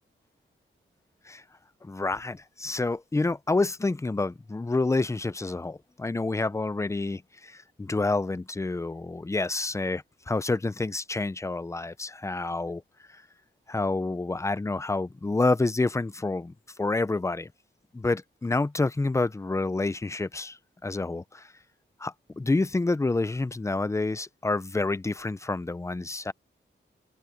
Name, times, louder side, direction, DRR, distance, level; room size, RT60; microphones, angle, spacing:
voice 1, 1.8-12.8 13.7-16.5 16.8-17.5 17.9-20.6 20.8-21.5 22.0-26.3, left 3 dB, 15° left, 0.5 m, -28 dB
open air
wide cardioid pair, 140°, 20 cm